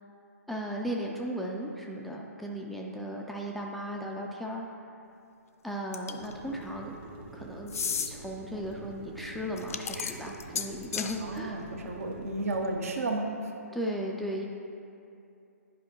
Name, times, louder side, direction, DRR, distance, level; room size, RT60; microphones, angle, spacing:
voice 1, 0.5-4.7 5.6-7.0 7.3-7.8 8.0-11.5 13.7-14.5, equal, ahead, -2 dB, 0.3 m, -36 dB
sound 1, 5.9-6.3 7.7-8.1 9.6-11.2, left 7 dB, 65° left, 0.5 m, -33 dB
sound 2, 6.2-12.7, right 3 dB, 35° right, 0.9 m, -46 dB
voice 2, 11.2-13.5, right 2 dB, 60° right, 3 dB, 0.9 m, -33 dB
10.0 x 5.1 x 3.0 m, 2.6 s
figure-of-eight pair, 135°, 9 cm